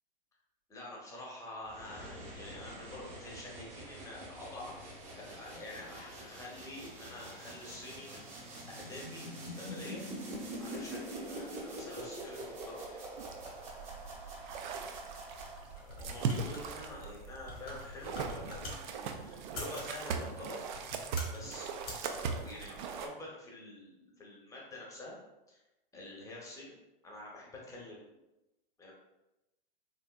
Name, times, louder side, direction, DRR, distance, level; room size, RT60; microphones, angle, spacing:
voice 1, 0.7-10.0 10.6-13.0 15.8-20.6 21.3-25.2 25.5-25.6 25.9-26.8 27.0-28.2 28.8-28.9, left 2 dB, 10° left, -3 dB, 0.8 m, -47 dB
sound 1, 1.7-16.0, right 1 dB, 25° right, 0.9 m, -45 dB
sound 2, 13.2-23.1, right 5 dB, 55° right, 0.4 m, -40 dB
sound 3, 15.6-18.8 19.4-19.9 20.6-21.4 21.8-22.1, left 2 dB, 80° left, 1.3 m, -45 dB
3.5 x 2.5 x 2.2 m, 0.96 s
hypercardioid pair, 115°, 29 cm